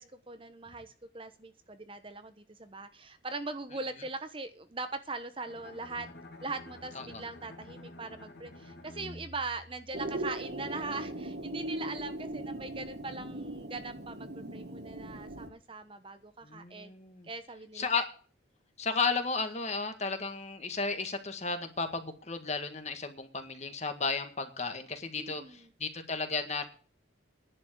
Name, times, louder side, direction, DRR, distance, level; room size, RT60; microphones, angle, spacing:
voice 1, 0.0-6.1 6.4-16.9 17.2-17.9 25.2-25.7, right 3 dB, 25° right, 9 dB, 1.0 m, -41 dB
Bowed string instrument, 5.5-10.5, left 1 dB, 60° left, 2.7 m, -50 dB
sound 1, 9.9-15.5, right 1 dB, 55° right, 1.9 m, -39 dB
voice 2, 16.4-17.3 17.7-18.1 18.8-26.6, left 4 dB, 35° left, 7 dB, 1.8 m, -34 dB
11.0 x 7.5 x 9.3 m, 0.40 s
head